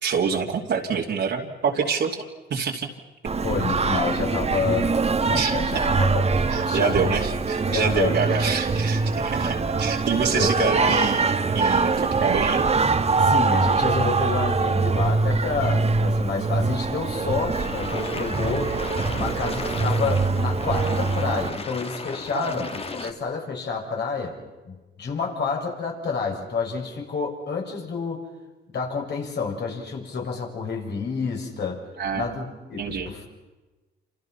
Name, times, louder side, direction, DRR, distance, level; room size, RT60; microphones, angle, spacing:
voice 1, 0.0-2.2 2.5-2.9 5.3-5.5 6.5-11.3 11.5-12.7 22.3-22.6 23.0-23.1 32.0-32.3 32.8-33.1, right 6 dB, 60° right, -2 dB, 2.8 m, -26 dB
Singing, 3.2-21.5, right 4 dB, 30° right, 1.7 m, -23 dB
voice 2, 3.4-5.0 5.3-6.3 6.6-7.2 7.7-8.2 9.4-9.5 10.3-11.1 13.2-18.8 19.1-24.4 24.7-28.2 28.7-31.8 32.1-33.3, left 5 dB, 60° left, 0 dB, 7.1 m, -29 dB
sound 1, 17.5-23.1, left 3 dB, 30° left, 2.1 m, -35 dB
29.0 x 27.5 x 5.9 m, 1.2 s
cardioid pair, 90°, 20 cm